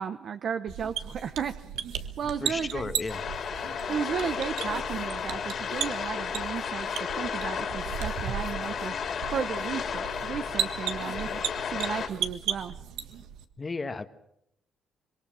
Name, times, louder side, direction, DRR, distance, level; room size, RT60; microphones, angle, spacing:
voice 1, 0.0-1.5 1.8-2.8 3.9-8.9 9.3-11.3 11.6-12.7, right 7 dB, 60° right, 9 dB, 1.1 m, -34 dB
sound 1, 0.7-13.4, right 9 dB, 85° right, 1.5 m, -36 dB
voice 2, 2.4-3.2 13.6-14.1, left 3 dB, 30° left, 9 dB, 1.4 m, -33 dB
sound 2, 3.1-12.1, left 7 dB, 60° left, 3.4 m, -33 dB
25.5 x 23.0 x 6.4 m, 0.74 s
cardioid pair, 90°, 0 cm